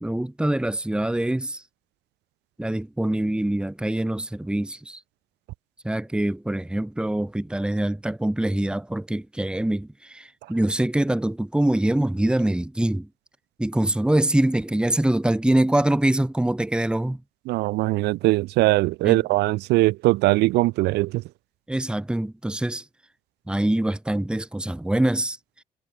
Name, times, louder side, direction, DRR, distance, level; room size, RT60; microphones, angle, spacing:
voice 1, 0.0-1.6 2.6-5.0 5.8-13.1 13.6-17.2 19.0-19.2 21.7-22.8 23.5-25.4, right 1 dB, 5° right, 2.0 m, -24 dB
voice 2, 17.5-21.2, right 19 dB, 85° right, 0.9 m, -21 dB
cardioid pair, 110°, 17 cm